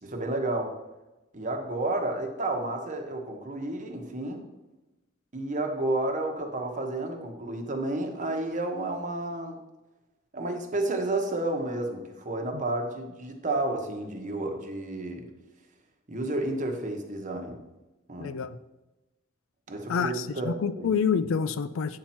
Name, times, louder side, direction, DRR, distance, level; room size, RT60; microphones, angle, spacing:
voice 1, 0.0-0.8 1.3-4.4 5.3-9.6 10.3-15.3 16.1-17.6 18.1-18.3 19.7-20.9, right 2 dB, 35° right, 3 dB, 1.1 m, -31 dB
voice 2, 18.2-18.6 19.9-22.0, left 6 dB, 70° left, 13 dB, 0.4 m, -28 dB
8.6 x 5.8 x 4.4 m, 1.0 s
head